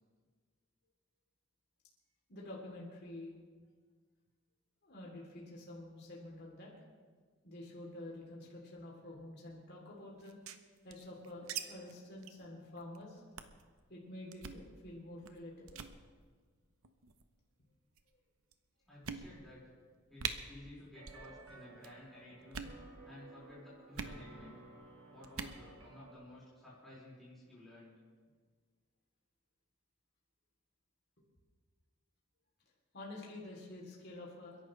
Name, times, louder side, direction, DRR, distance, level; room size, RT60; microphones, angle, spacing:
voice 1, 2.3-3.3 4.8-6.7 7.4-10.4 10.8-13.2 13.9-15.8 31.2-31.3 32.9-34.6, left 1 dB, 50° left, -3 dB, 3.2 m, -49 dB
sound 1, 10.2-11.6 11.9-12.0 12.2-12.4 12.8-13.0 13.4-13.6 14.3-14.6 15.2-15.4 15.7-15.9 16.8-17.3 18.0-18.1 18.5-18.6 19.0-19.6 19.9-20.0 20.2-20.3 21.0-21.3 21.5-21.9 22.4-22.8 23.9-24.2 25.2-25.6, right 7 dB, 85° right, 0.9 m, -42 dB
voice 2, 18.9-19.6 20.1-22.7 23.0-24.5 25.1-27.9, left 1 dB, ahead, -9 dB, 5.1 m, -54 dB
sound 2, 20.9-26.1, right 2 dB, 65° right, 2.9 m, -56 dB
30.0 x 11.0 x 3.3 m, 1.5 s
head